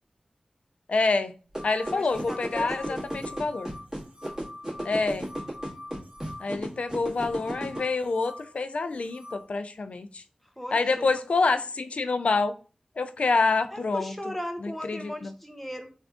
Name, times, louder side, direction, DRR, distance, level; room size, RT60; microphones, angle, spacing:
voice 1, 0.9-1.3 1.6-3.7 4.8-5.3 6.4-10.2 10.7-12.5 13.0-14.1 14.9-15.3, left 3 dB, 70° left, 0.3 m, -27 dB
sound 1, 1.5-7.8, right 1 dB, 25° right, 1.8 m, -33 dB
sound 2, 1.6-9.5, left 1 dB, 70° right, 1.0 m, -45 dB
voice 2, 1.9-3.2 10.6-11.1 13.7-15.9, equal, 5° left, 0.6 m, -37 dB
3.4 x 2.4 x 3.4 m
wide cardioid pair, 75°, 2 cm